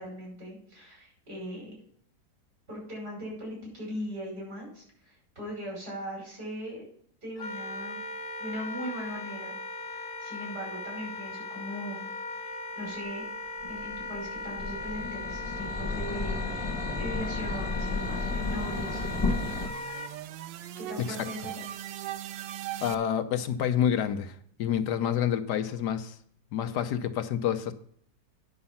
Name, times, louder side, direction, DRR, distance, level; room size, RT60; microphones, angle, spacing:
voice 1, 0.0-1.8 2.7-6.8 7.2-8.0 8.4-9.5 9.9-12.0 12.5-13.2 13.7-19.0 20.8-21.7, equal, 60° right, -2 dB, 6.0 m, -39 dB
Wind instrument woodwind instrument, 7.4-20.1, left 2 dB, 40° left, 0.8 m, -38 dB
sound 1, 13.6-19.7, left 3 dB, 15° left, 1.2 m, -33 dB
sound 2, 16.6-23.0, right 12 dB, 90° right, 1.3 m, -41 dB
voice 2, 22.8-26.2 26.5-27.7, left 9 dB, 75° left, 9 dB, 1.3 m, -28 dB
9.6 x 6.7 x 5.6 m, 0.63 s
omnidirectional pair, 1.9 m